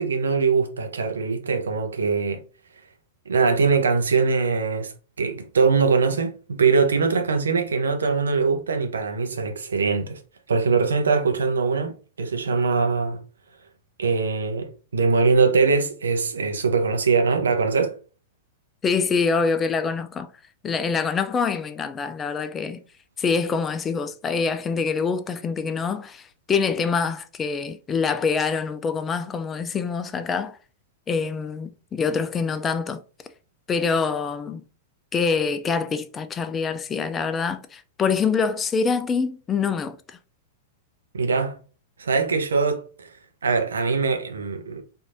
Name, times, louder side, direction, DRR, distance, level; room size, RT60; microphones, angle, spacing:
voice 1, 0.0-2.4 3.3-10.2 10.5-13.2 14.0-18.0 41.1-41.6 42.0-43.1 43.4-44.8, right 4 dB, 70° right, 0.7 m, -22 dB
voice 2, 18.8-20.3 20.6-22.8 23.2-30.6 31.1-33.0 33.7-34.6 35.1-40.2, left 5 dB, 20° left, 0.4 m, -25 dB
4.5 x 2.7 x 2.5 m
figure-of-eight pair, 95°, 0 cm